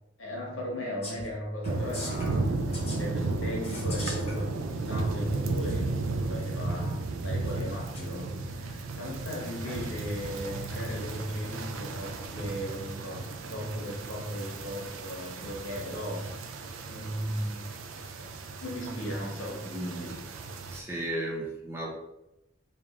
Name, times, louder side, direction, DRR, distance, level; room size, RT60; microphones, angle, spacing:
voice 1, 0.2-6.0 6.3-16.5 16.8-17.7 18.2-18.3 18.6-20.1, equal, 75° left, -2 dB, 1.2 m, -37 dB
sound 1, 1.0-1.3 1.6-2.3 2.7-3.0 3.6-4.3 5.3-5.4 7.9-8.1, left 2 dB, 30° left, 1.0 m, -40 dB
sound 2, 1.6-20.8, right 3 dB, 75° right, 0.4 m, -34 dB
voice 2, 19.7-20.1 20.7-21.9, right 1 dB, 10° right, -3 dB, 0.5 m, -35 dB
3.4 x 2.5 x 3.5 m, 0.89 s
head